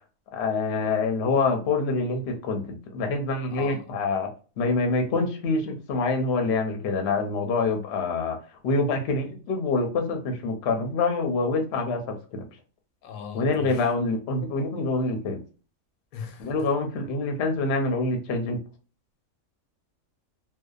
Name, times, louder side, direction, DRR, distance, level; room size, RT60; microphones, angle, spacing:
voice 1, 0.3-2.6 2.9-4.3 4.6-8.4 8.6-12.4 13.3-15.4 16.4-18.6, left 3 dB, 60° left, 0.7 m, -26 dB
voice 2, 3.5-3.8 13.0-13.9 16.1-16.6, left 6 dB, 90° left, 1.0 m, -38 dB
2.7 x 2.1 x 2.3 m
omnidirectional pair, 1.4 m